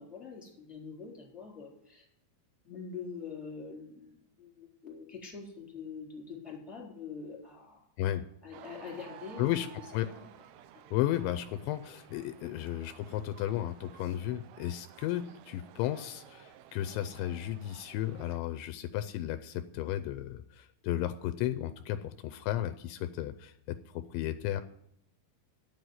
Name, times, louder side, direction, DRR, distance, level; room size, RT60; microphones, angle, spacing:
voice 1, 0.0-2.1 2.6-7.8 8.4-9.7 10.1-10.3 10.7-10.8, left 5 dB, ahead, -3 dB, 2.9 m, -44 dB
sound 1, 8.5-18.4, right 11 dB, 85° right, 2.3 m, -54 dB
voice 2, 9.4-9.7 9.9-10.1 10.9-24.6, left 13 dB, 80° left, 9 dB, 2.8 m, -34 dB
10.5 x 7.9 x 9.2 m, 0.73 s
omnidirectional pair, 5.4 m